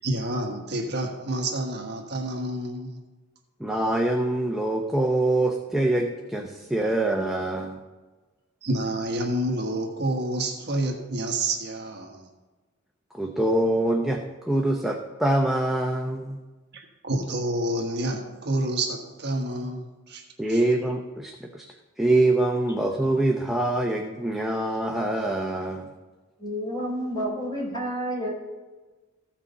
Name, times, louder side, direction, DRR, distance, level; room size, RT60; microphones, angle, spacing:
voice 1, 0.0-3.0 7.6-7.7 8.6-12.3 16.7-20.2 20.5-20.6, right 1 dB, 55° right, 1 dB, 1.3 m, -29 dB
voice 2, 3.6-7.8 13.1-16.4 20.4-21.7 22.0-25.9, right 1 dB, ahead, 1 dB, 0.7 m, -24 dB
voice 3, 26.4-28.3, equal, 20° left, -4 dB, 3.8 m, -29 dB
15.0 x 6.1 x 4.1 m, 1.2 s
head